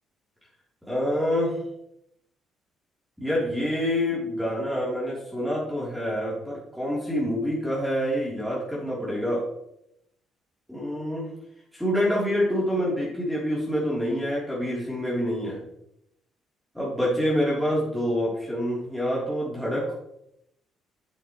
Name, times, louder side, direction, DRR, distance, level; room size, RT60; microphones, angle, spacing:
voice 1, 0.8-1.6 3.2-9.4 10.7-11.3 11.7-15.6 16.7-19.9, equal, ahead, -6 dB, 3.2 m, -26 dB
8.0 x 7.1 x 3.1 m, 0.79 s
hypercardioid pair, 55°, 0 cm